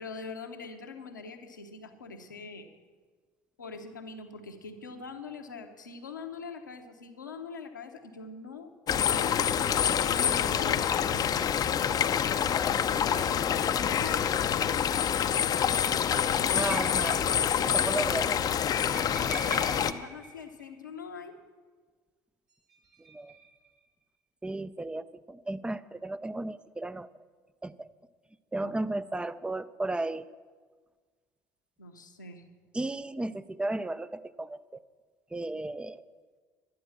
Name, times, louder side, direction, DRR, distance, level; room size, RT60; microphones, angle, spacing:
voice 1, 0.0-2.7 3.6-9.5 10.2-11.3 13.3-14.8 16.0-16.7 18.9-21.3 28.6-28.7 31.8-32.4, left 5 dB, 85° left, 5 dB, 1.0 m, -43 dB
sound 1, 8.9-19.9, left 8 dB, 40° left, 0.6 m, -26 dB
voice 2, 16.5-17.2 17.6-18.4 23.1-23.4 24.4-27.1 27.6-27.9 28.5-30.3 32.7-34.8 35.3-36.1, right 2 dB, 10° right, 15 dB, 0.6 m, -34 dB
sound 2, 16.7-17.5 17.8-17.9 18.1-18.2 18.9-21.0 22.5-23.7, right 1 dB, 75° right, 4.1 m, -42 dB
11.5 x 10.0 x 7.2 m, 1.5 s
figure-of-eight pair, 60°, 10 cm